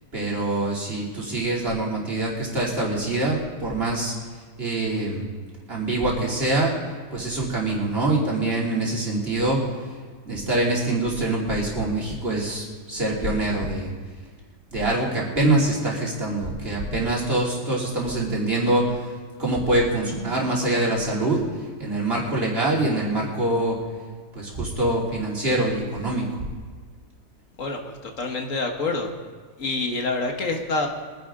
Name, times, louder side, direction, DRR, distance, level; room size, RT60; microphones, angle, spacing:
voice 1, 0.1-4.1 4.6-5.3 5.7-6.7 7.1-9.6 10.2-13.9 14.7-19.1 19.4-21.4 21.8-23.8 24.3-26.4, right 2 dB, 35° right, -3 dB, 3.2 m, -24 dB
voice 2, 27.6-29.1 29.6-30.9, left 3 dB, 50° left, 3 dB, 1.8 m, -27 dB
23.5 x 10.5 x 3.8 m, 1.5 s
omnidirectional pair, 1.8 m